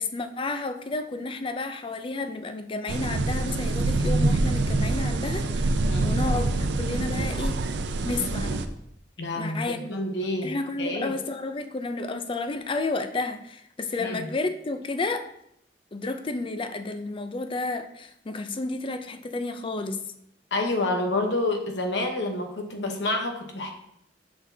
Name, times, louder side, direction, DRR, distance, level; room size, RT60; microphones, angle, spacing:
voice 1, 0.0-5.7 6.0-7.6 8.1-8.6 9.4-10.0 10.4-15.3 15.9-20.0, left 3 dB, 30° left, 9 dB, 0.4 m, -31 dB
sound 1, 2.9-8.7, right 2 dB, 75° right, 0.5 m, -25 dB
voice 2, 5.9-6.2 9.2-11.2 14.0-14.3 20.5-23.7, left 2 dB, 80° left, 3 dB, 1.0 m, -28 dB
6.1 x 5.9 x 2.7 m, 0.75 s
head